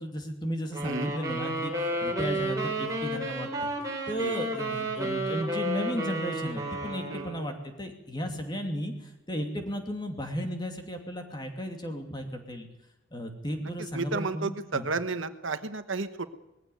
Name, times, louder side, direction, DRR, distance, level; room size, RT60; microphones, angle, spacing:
voice 1, 0.0-1.7 2.0-3.7 4.1-8.9 9.3-12.7 13.1-14.9, equal, 20° left, 4 dB, 2.7 m, -34 dB
sound 1, 0.7-7.5, right 1 dB, 15° right, 4.3 m, -32 dB
voice 2, 13.9-16.3, right 3 dB, 70° right, 11 dB, 1.2 m, -32 dB
19.5 x 16.0 x 9.3 m, 0.93 s
head